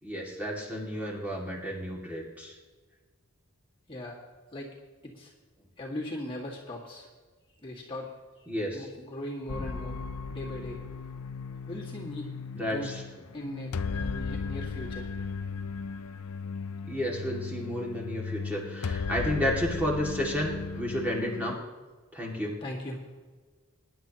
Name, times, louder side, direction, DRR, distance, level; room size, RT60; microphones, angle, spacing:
voice 1, 0.0-2.5 8.5-8.9 9.5-9.7 12.5-13.0 16.9-21.6 22.1-22.6, equal, 5° right, -3 dB, 2.2 m, -32 dB
voice 2, 3.9-4.2 4.5-4.7 5.0-5.3 5.8-7.1 7.6-8.5 8.7-10.0 10.3-10.8 11.7-12.3 12.6-12.9 13.3-15.1 22.6-23.0, left 1 dB, 25° left, -4 dB, 1.9 m, -39 dB
sound 1, 9.5-21.6, left 5 dB, 85° left, 0.6 m, -36 dB
23.5 x 10.5 x 3.0 m, 1.4 s
head